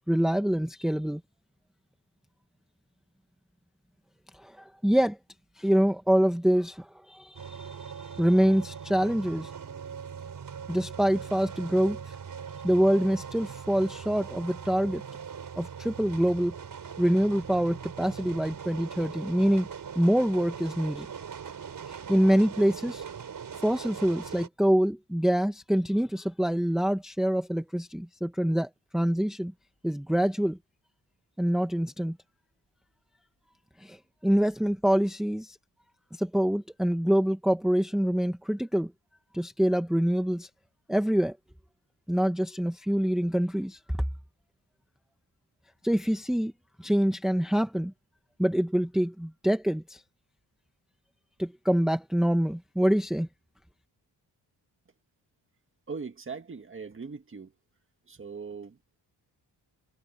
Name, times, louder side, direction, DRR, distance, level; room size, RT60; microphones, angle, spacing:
voice 1, 0.1-1.2 4.3-5.2 5.6-9.5 10.7-12.1 12.6-15.0 15.6-16.5 17.0-19.7 19.9-21.1 21.8-23.0 23.5-29.5 29.8-30.6 31.4-32.2 33.8-35.6 36.1-38.9 39.3-40.5 40.9-41.4 42.1-43.8 45.8-46.5 46.8-47.9 48.4-50.0 51.4-53.3, equal, ahead, 1.0 m, -25 dB
sound 1, 7.3-24.5, right 7 dB, 50° right, 5.3 m, -41 dB
voice 2, 55.9-57.5 58.1-59.0, right 5 dB, 30° right, 1.7 m, -40 dB
wide cardioid pair, 155°, 41 cm